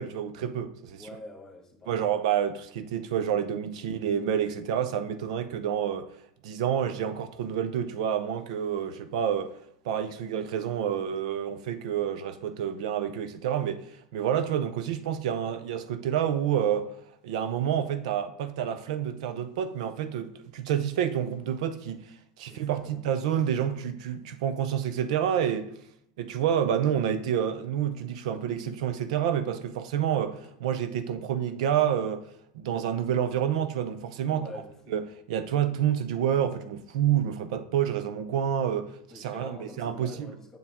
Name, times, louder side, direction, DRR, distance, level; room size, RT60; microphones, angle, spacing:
voice 1, 0.0-1.1 1.9-6.1 6.4-9.5 9.8-13.9 14.1-16.9 17.2-22.0 22.4-25.7 26.2-32.2 32.5-34.4 34.9-40.1, right 9 dB, 75° right, 0.6 m, -28 dB
voice 2, 1.0-2.1 22.5-23.1 30.4-30.5 34.3-35.0 39.1-40.6, left 2 dB, 15° left, 1.6 m, -46 dB
7.2 x 5.7 x 3.6 m
supercardioid pair, 110°, 4 cm